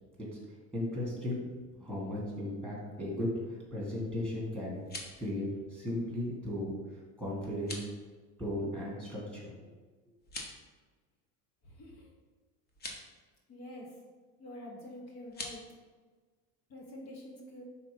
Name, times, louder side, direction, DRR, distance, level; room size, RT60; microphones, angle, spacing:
voice 1, 0.7-1.4 1.8-4.8 5.2-6.7 7.2-7.9 8.4-9.5, left 1 dB, 5° left, -5 dB, 1.8 m, -36 dB
sound 1, 4.7-5.2 7.5-7.9 10.2-10.7 12.7-13.0 15.3-15.6, left 2 dB, 25° left, 0.9 m, -43 dB
voice 2, 11.8-12.1 13.5-13.9 14.4-15.6 16.7-17.6, left 1 dB, 45° left, -1 dB, 1.1 m, -46 dB
5.0 x 3.8 x 5.1 m, 1.4 s
cardioid pair, 150°, 37 cm